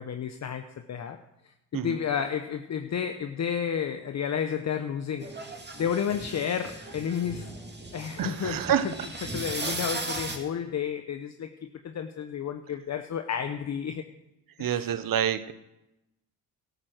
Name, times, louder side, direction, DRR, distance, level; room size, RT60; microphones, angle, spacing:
voice 1, 0.0-5.3 5.8-7.5 7.9-8.9 9.2-14.0 14.6-15.0, left 8 dB, 40° left, 7 dB, 0.8 m, -32 dB
sound 1, 5.2-10.4, right 2 dB, 25° right, 2.2 m, -37 dB
voice 2, 8.2-8.9 14.6-15.5, right 9 dB, 55° right, 13 dB, 0.9 m, -27 dB
12.5 x 7.9 x 6.4 m, 0.92 s
supercardioid pair, 70°, 41 cm